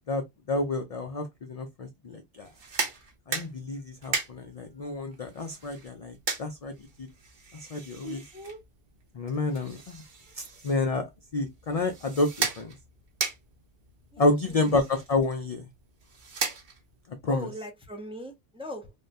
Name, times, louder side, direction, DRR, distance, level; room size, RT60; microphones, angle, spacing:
voice 1, 0.1-2.5 3.3-6.7 7.7-8.2 9.1-10.0 10.4-11.1 11.3-12.7 14.2-15.7 17.2-17.5, left 2 dB, 55° left, 0.4 m, -29 dB
sound 1, 2.4-17.1, right 4 dB, 50° right, 0.9 m, -38 dB
voice 2, 8.0-8.6 14.1-14.7 17.3-18.9, equal, 5° right, 0.5 m, -40 dB
3.4 x 2.2 x 2.5 m
omnidirectional pair, 1.1 m